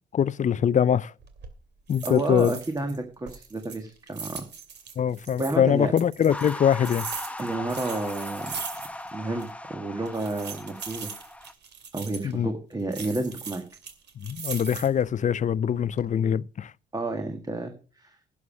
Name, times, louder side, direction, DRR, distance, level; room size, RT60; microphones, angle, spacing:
voice 1, 0.1-1.1 1.9-2.6 5.0-7.1 12.2-12.5 14.2-16.7, left 8 dB, 40° left, 0.5 m, -23 dB
sound 1, 1.2-1.5 1.9-3.0 3.3-5.6 6.0-9.1 9.4-9.5 10.1-12.3 12.9-15.0 15.5-16.0, right 6 dB, 60° right, 2.5 m, -39 dB
voice 2, 2.0-4.4 5.4-5.9 7.4-8.5 9.1-11.1 11.9-13.6 16.9-18.2, right 2 dB, 20° right, 1.7 m, -31 dB
sound 2, 6.3-11.5, left 1 dB, 5° left, 0.9 m, -38 dB
11.0 x 7.2 x 6.3 m
cardioid pair, 90°, 20 cm